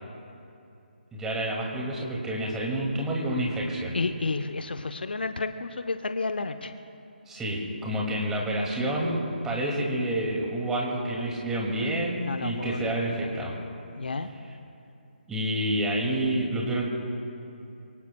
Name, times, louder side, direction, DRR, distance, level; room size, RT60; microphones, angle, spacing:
voice 1, 1.1-4.0 7.3-9.2 9.4-13.5 15.3-16.8, right 1 dB, 5° right, -3 dB, 2.3 m, -28 dB
voice 2, 3.9-6.7 12.2-13.4 14.0-14.3, left 3 dB, 65° left, 8 dB, 0.8 m, -31 dB
25.5 x 23.0 x 2.3 m, 2.7 s
figure-of-eight pair, 150°, 6 cm